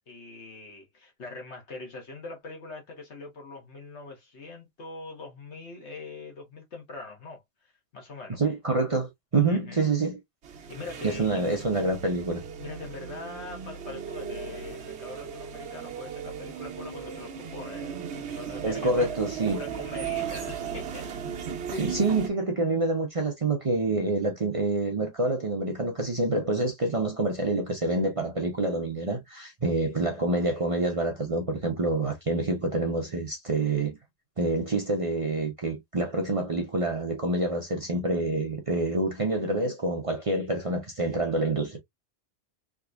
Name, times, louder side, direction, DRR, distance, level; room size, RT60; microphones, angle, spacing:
voice 1, 0.1-7.4 7.9-8.4 9.5-9.8 10.7-11.4 12.6-19.1 19.5-21.1 21.7-22.1, left 3 dB, 70° left, 1.5 m, -42 dB
voice 2, 8.4-10.2 11.0-12.4 18.6-19.6 21.8-34.0 34.4-41.8, right 2 dB, 35° right, 0.6 m, -27 dB
sound 1, 10.4-22.3, right 8 dB, 70° right, 1.0 m, -37 dB
3.6 x 2.9 x 2.3 m
omnidirectional pair, 1.2 m